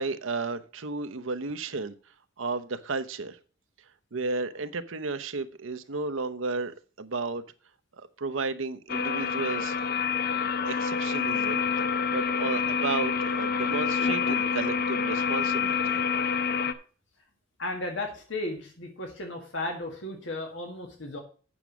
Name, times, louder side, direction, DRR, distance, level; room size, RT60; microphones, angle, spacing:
voice 1, 0.0-1.9 2.4-3.4 4.1-7.4 8.0-9.8 10.6-11.6 12.1-16.0, right 3 dB, 90° right, 10 dB, 0.8 m, -33 dB
sound 1, 8.9-16.7, left 6 dB, 50° left, 0.8 m, -27 dB
voice 2, 17.6-21.2, left 2 dB, 70° left, 3 dB, 1.8 m, -35 dB
8.7 x 6.1 x 6.0 m, 0.38 s
head